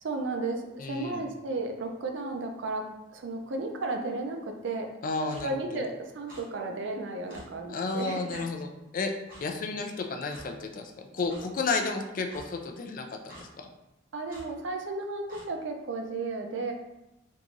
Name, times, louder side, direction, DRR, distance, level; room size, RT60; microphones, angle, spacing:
voice 1, 0.0-4.9 5.2-8.5 14.1-16.7, right 2 dB, 75° right, 3 dB, 0.5 m, -34 dB
voice 2, 0.8-1.3 5.0-5.8 7.7-9.1 9.4-13.7, left 3 dB, 45° left, 4 dB, 0.4 m, -32 dB
Clock, 5.3-5.5 6.3-6.4 7.3-7.4 8.3-8.5 9.3-9.4 10.3-10.5 11.3-11.4 12.3-12.4 13.3-13.5 14.3-14.5 15.3-15.5, equal, 45° right, 1.0 m, -48 dB
3.7 x 2.9 x 2.5 m, 0.94 s
head